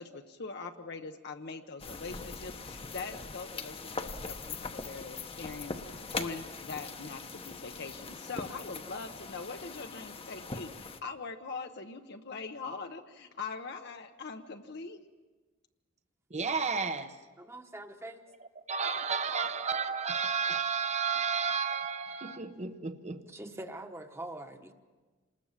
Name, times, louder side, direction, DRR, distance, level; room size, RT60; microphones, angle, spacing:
voice 1, 0.0-15.1, left 4 dB, 55° left, 1.0 m, -42 dB
sound 1, 1.8-11.0, left 4 dB, 30° left, 1.1 m, -41 dB
voice 2, 16.3-17.2 18.7-23.2, right 5 dB, 35° right, 0.9 m, -32 dB
voice 3, 17.4-18.3 23.3-24.7, right 1 dB, 15° right, 1.3 m, -43 dB
27.0 x 20.0 x 7.4 m
head